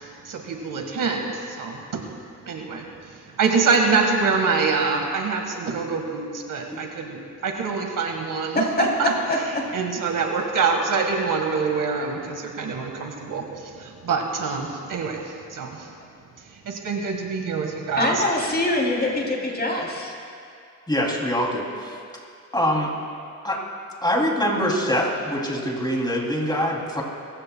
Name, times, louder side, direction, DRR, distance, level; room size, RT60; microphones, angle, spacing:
voice 1, 0.0-2.0 2.5-15.9 16.5-18.2, right 4 dB, 75° right, 3 dB, 1.7 m, -25 dB
voice 2, 8.5-8.9 9.3-9.6 18.0-20.1, left 1 dB, 30° left, -1 dB, 3.2 m, -23 dB
voice 3, 20.9-22.0 22.5-22.9 23.4-23.6 24.0-27.0, equal, 15° left, -2 dB, 3.0 m, -24 dB
24.5 x 14.5 x 2.3 m, 2.4 s
cardioid pair, 85°, 33 cm